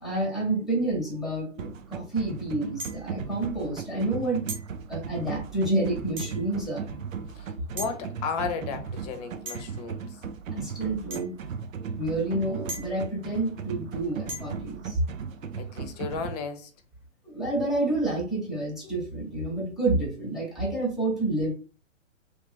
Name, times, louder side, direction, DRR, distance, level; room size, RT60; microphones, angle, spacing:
voice 1, 0.0-4.4 4.9-7.0 10.5-11.4 11.9-15.0 17.2-21.5, right 2 dB, ahead, 0.9 m, -29 dB
sound 1, 1.6-16.4, right 6 dB, 90° right, 0.6 m, -37 dB
sound 2, 2.8-3.2 4.5-4.7 6.2-6.5 7.8-8.0 9.5-9.8 11.1-11.3 12.7-13.1 14.3-14.6, right 1 dB, 20° right, 1.1 m, -38 dB
voice 2, 7.4-10.1 15.6-16.7, left 6 dB, 30° left, 0.7 m, -34 dB
3.1 x 2.6 x 3.3 m
hypercardioid pair, 135°, 38 cm